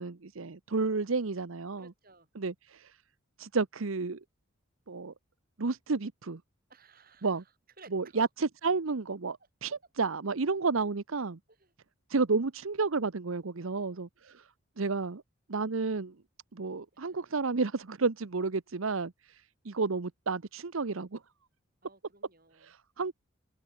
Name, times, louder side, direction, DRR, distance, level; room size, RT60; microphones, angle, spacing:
voice 1, 0.0-1.9 2.4-2.9 3.4-4.2 4.9-5.1 5.6-6.4 7.2-7.4 7.9-11.4 12.1-14.4 14.8-15.2 15.5-16.1 16.5-21.2 22.6-23.1, right 4 dB, 75° right, 0.9 m, -31 dB
voice 2, 1.8-2.3 6.7-7.4 7.8-8.3 11.5-11.7 13.6-14.0 16.9-17.1 21.8-22.7, right 3 dB, 45° right, 5.2 m, -57 dB
open air
head